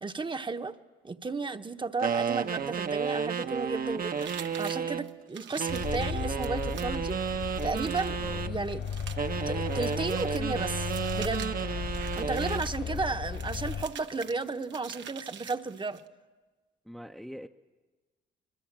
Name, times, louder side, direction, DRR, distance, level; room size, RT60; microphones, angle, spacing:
voice 1, 0.0-0.7 1.0-4.3 4.6-7.1 7.6-8.2 8.4-8.9 9.5-11.5 12.2-16.0, right 4 dB, 25° right, 8 dB, 1.0 m, -33 dB
sound 1, 2.0-5.1 5.6-8.5 9.2-12.7, right 7 dB, 45° right, 1.0 m, -32 dB
sound 2, 4.2-16.1, right 9 dB, 70° right, 1.0 m, -46 dB
sound 3, 5.7-13.8, left 7 dB, 75° left, 3.5 m, -35 dB
voice 2, 12.8-13.2 16.8-17.5, equal, ahead, 4 dB, 0.7 m, -44 dB
26.5 x 21.0 x 7.5 m, 1.3 s
cardioid pair, 90°, 20 cm